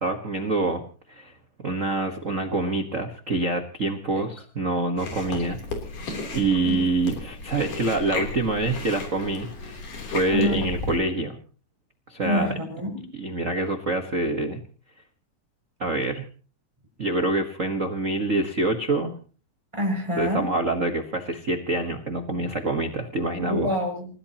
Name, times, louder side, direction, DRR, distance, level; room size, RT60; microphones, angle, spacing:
voice 1, 0.0-0.8 1.1-1.3 1.6-5.6 6.3-11.4 12.1-12.5 13.1-14.6 15.8-16.2 17.0-19.1 20.2-23.7, right 2 dB, 55° right, 5 dB, 0.9 m, -26 dB
Chewing mastication, 5.0-11.0, left 3 dB, 75° left, 4.9 m, -34 dB
voice 2, 12.2-12.9 19.7-20.5 23.4-24.1, equal, 10° right, 1 dB, 6.5 m, -27 dB
29.0 x 16.5 x 2.9 m, 0.39 s
omnidirectional pair, 3.7 m